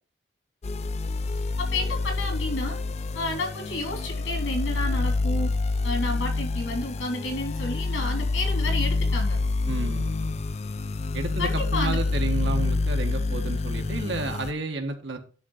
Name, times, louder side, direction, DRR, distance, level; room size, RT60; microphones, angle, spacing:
sound 1, 0.6-14.5, left 3 dB, 35° left, 0.4 m, -27 dB
voice 1, 1.6-2.8 3.1-5.5 5.8-9.4 11.4-12.0, left 2 dB, 80° left, 2 dB, 3.4 m, -31 dB
voice 2, 9.7-10.4 11.1-15.2, right 2 dB, 70° right, 5 dB, 1.5 m, -31 dB
11.0 x 3.8 x 5.7 m, 0.38 s
head